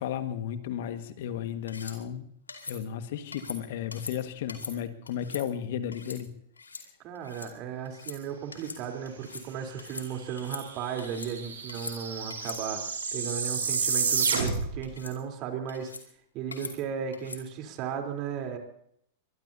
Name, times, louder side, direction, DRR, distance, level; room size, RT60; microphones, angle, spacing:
voice 1, 0.0-2.3 2.7-6.3, left 9 dB, 60° left, 9 dB, 1.7 m, -34 dB
sound 1, 1.7-2.0 2.5-2.8 3.3-3.6 3.9-4.1 4.5-4.7 5.1-5.4 5.9-6.2 6.6-6.8 7.1-7.5 7.8-8.2 8.5-8.8 9.0-9.5 9.8-10.1 10.4-11.3 11.7-12.0 12.3-12.6 13.0-13.4 13.7-14.0 14.3-14.6 14.8-15.1 15.7-16.0 16.5-16.7 17.1-17.4, left 4 dB, 90° left, 2.5 m, -42 dB
voice 2, 7.0-12.8 13.1-15.9 16.3-18.6, right 7 dB, 45° right, 4 dB, 3.6 m, -35 dB
sound 2, 10.3-10.4 10.6-14.8, right 5 dB, 80° right, 5.3 m, -30 dB
23.0 x 22.5 x 2.8 m, 0.71 s
hypercardioid pair, 100°, 0 cm